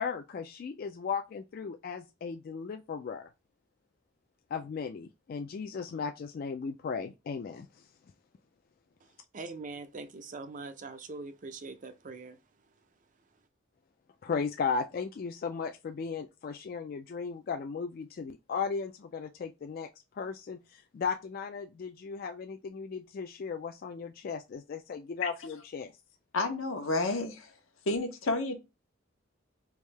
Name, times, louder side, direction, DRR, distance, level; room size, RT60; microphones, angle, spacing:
voice 1, 0.0-3.3 4.5-7.8 14.2-19.9 20.1-25.9, left 5 dB, 45° left, 0.3 m, -36 dB
voice 2, 9.3-12.4, right 3 dB, 40° right, 0.5 m, -42 dB
voice 3, 26.3-27.5 27.9-28.6, left 2 dB, 85° left, 0.9 m, -30 dB
3.5 x 2.7 x 3.2 m
head